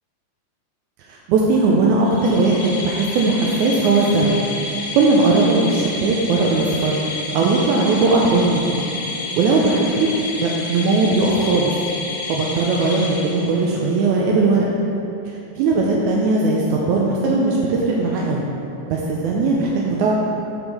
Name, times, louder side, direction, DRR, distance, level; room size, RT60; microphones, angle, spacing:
voice 1, 1.1-4.4 4.9-7.0 7.3-8.8 9.4-10.1 10.4-11.7 12.3-14.7 15.6-18.5 18.9-20.2, right 3 dB, 90° right, -2 dB, 2.1 m, -18 dB
sound 1, 2.0-13.9, left 3 dB, 60° left, 1.5 m, -30 dB
5.9 x 5.5 x 6.5 m, 3.0 s
omnidirectional pair, 3.4 m